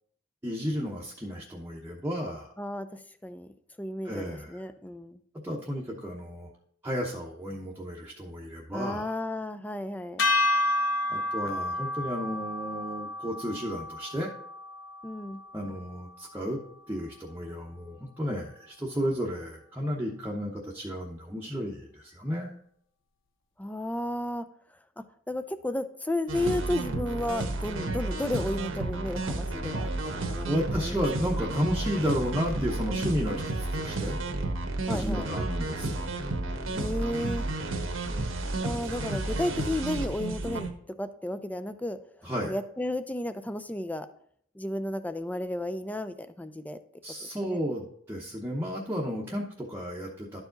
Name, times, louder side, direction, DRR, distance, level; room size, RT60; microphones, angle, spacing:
voice 1, 0.4-2.5 4.0-4.6 5.4-6.5 6.8-9.2 11.1-14.3 15.5-16.6 16.9-22.5 30.5-34.2 34.9-36.1 42.2-42.6 47.0-50.4, equal, 10° right, -4 dB, 0.9 m, -33 dB
voice 2, 2.6-2.9 3.2-3.5 3.8-5.2 8.7-10.3 15.0-15.4 23.6-24.5 25.0-30.5 30.8-31.0 34.8-35.3 36.7-37.5 38.6-40.7 41.0-42.0 42.4-44.1 44.5-46.8 47.2-47.6, left 1 dB, 10° left, 11 dB, 0.5 m, -33 dB
sound 1, 10.2-16.5, left 2 dB, 70° left, 0.9 m, -31 dB
sound 2, 26.3-40.7, right 2 dB, 85° right, 1.2 m, -32 dB
11.5 x 4.8 x 3.9 m, 0.65 s
head